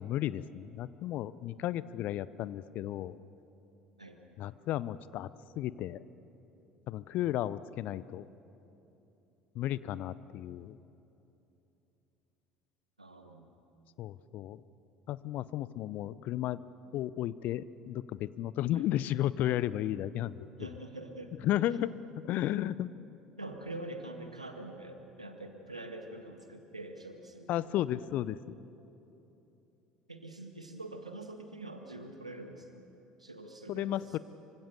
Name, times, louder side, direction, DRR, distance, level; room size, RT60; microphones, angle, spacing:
voice 1, 0.0-3.1 4.4-5.3 5.6-6.0 6.9-8.3 9.5-10.8 14.0-14.6 15.1-16.6 16.9-20.4 21.4-21.9 22.2-22.9 27.5-28.6 33.7-34.2, left 13 dB, 50° left, 18 dB, 0.7 m, -33 dB
voice 2, 13.0-13.5 18.7-18.9 20.6-21.3 23.4-27.7 30.1-32.8 33.2-34.2, right 2 dB, 90° right, 5 dB, 1.7 m, -45 dB
25.0 x 25.0 x 6.9 m, 3.0 s
figure-of-eight pair, 60°, 3 cm